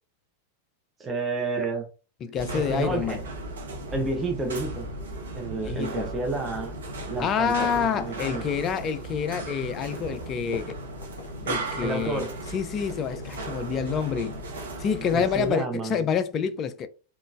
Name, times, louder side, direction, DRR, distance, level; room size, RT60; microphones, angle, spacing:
voice 1, 1.0-1.9 2.5-3.2 3.9-4.9 5.3-6.7 7.1-8.5 11.8-12.3 15.1-16.1, right 3 dB, 20° right, 0.6 m, -30 dB
voice 2, 2.2-3.2 5.6-6.1 7.2-10.7 11.4-12.2 12.5-14.4 14.8-16.9, left 7 dB, 30° left, 0.3 m, -27 dB
sound 1, 2.4-15.6, right 2 dB, 65° right, 0.8 m, -36 dB
sound 2, 6.9-14.3, left 2 dB, 70° left, 0.7 m, -43 dB
3.7 x 2.4 x 2.4 m
figure-of-eight pair, 90°, 0 cm